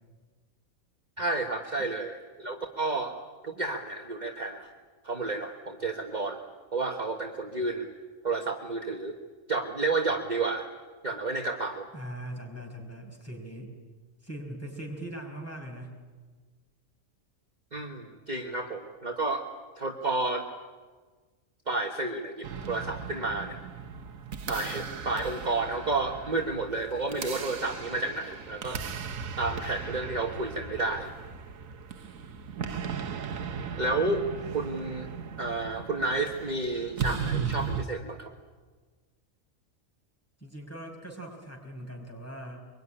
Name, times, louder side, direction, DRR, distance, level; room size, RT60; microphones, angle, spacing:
voice 1, 1.2-3.1 3.4-4.7 5.0-6.4 6.7-7.9 8.2-9.2 9.5-10.7 11.0-11.9 17.7-19.4 19.8-20.5 21.7-23.6 24.5-28.8 29.4-31.1 33.8-34.2 34.5-35.1 35.4-38.3, right 3 dB, 35° right, 2 dB, 1.5 m, -31 dB
voice 2, 11.9-13.7 14.2-15.9 40.4-42.7, right 1 dB, 10° left, 1 dB, 5.3 m, -40 dB
sound 1, 22.4-37.9, right 6 dB, 75° right, 1.5 m, -37 dB
24.5 x 22.5 x 9.9 m, 1.4 s
omnidirectional pair, 1.4 m